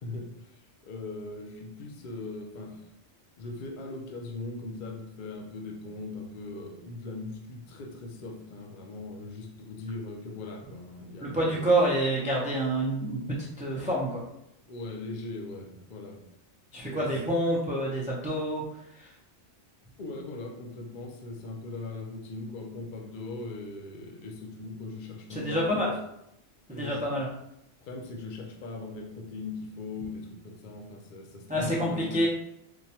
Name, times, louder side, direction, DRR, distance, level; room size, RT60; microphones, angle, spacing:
voice 1, 0.0-2.8 3.4-11.9 14.7-16.2 16.7-17.1 20.0-25.9 26.7-27.1 27.8-32.3, left 3 dB, 50° left, 1 dB, 0.7 m, -40 dB
voice 2, 11.2-14.2 16.7-19.1 25.3-25.9 26.7-27.3 31.5-32.3, right 1 dB, 10° right, -4 dB, 0.3 m, -28 dB
4.5 x 2.2 x 2.8 m, 0.80 s
omnidirectional pair, 1.3 m